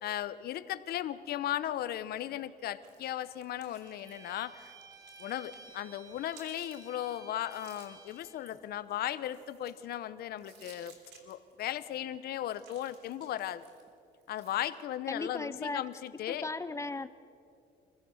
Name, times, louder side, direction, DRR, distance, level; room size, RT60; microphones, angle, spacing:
voice 1, 0.0-4.7 5.2-10.9 11.2-13.7 14.3-16.5, left 12 dB, 65° left, 14 dB, 0.9 m, -36 dB
sound 1, 2.8-5.8 6.1-9.9 10.3-11.9 12.3-14.8, right 5 dB, 85° right, 3.1 m, -59 dB
Bowed string instrument, 3.8-8.4, right 4 dB, 20° right, 2.0 m, -54 dB
voice 2, 15.1-15.8 16.3-17.1, left 3 dB, 15° left, 14 dB, 0.6 m, -36 dB
25.0 x 16.0 x 6.5 m, 2.5 s
cardioid pair, 110°, 17 cm